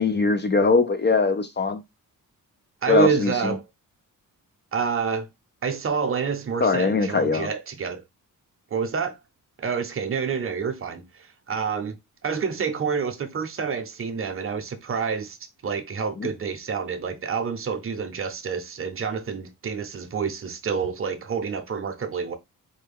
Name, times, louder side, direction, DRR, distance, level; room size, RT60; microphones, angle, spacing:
voice 1, 0.0-1.8 2.9-3.5 6.6-7.5, left 4 dB, 30° left, 0.5 m, -21 dB
voice 2, 2.8-3.6 4.7-5.3 5.6-8.0 8.7-9.2 9.6-12.0 12.2-15.4 15.6-22.4, right 6 dB, 40° right, 0.7 m, -28 dB
4.5 x 2.2 x 3.4 m
cardioid pair, 120°, 34 cm